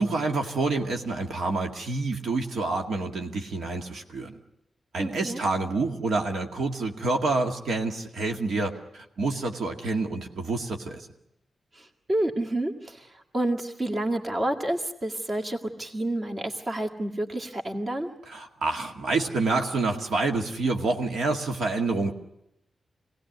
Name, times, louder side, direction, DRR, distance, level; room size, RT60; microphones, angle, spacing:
voice 1, 0.0-4.3 4.9-11.0 18.3-22.1, right 3 dB, 85° right, 2 dB, 2.0 m, -28 dB
voice 2, 5.0-5.4 11.7-18.1, right 1 dB, 30° right, 3 dB, 2.1 m, -29 dB
26.0 x 18.0 x 9.3 m, 0.85 s
wide cardioid pair, 135°, 0 cm